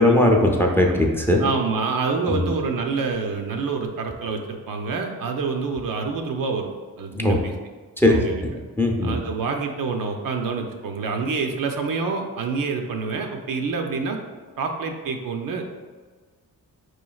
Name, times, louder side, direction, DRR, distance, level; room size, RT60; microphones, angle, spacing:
voice 1, 0.0-1.4 2.3-2.4 7.1-7.4 8.0-8.5 8.8-9.2, left 1 dB, 5° left, 1 dB, 0.5 m, -19 dB
voice 2, 1.4-6.7 7.0-7.5 8.1-8.4 9.0-14.2 14.6-15.8, right 4 dB, 65° right, 3 dB, 0.5 m, -27 dB
4.7 x 3.1 x 2.3 m, 1.4 s
cardioid pair, 60°, 37 cm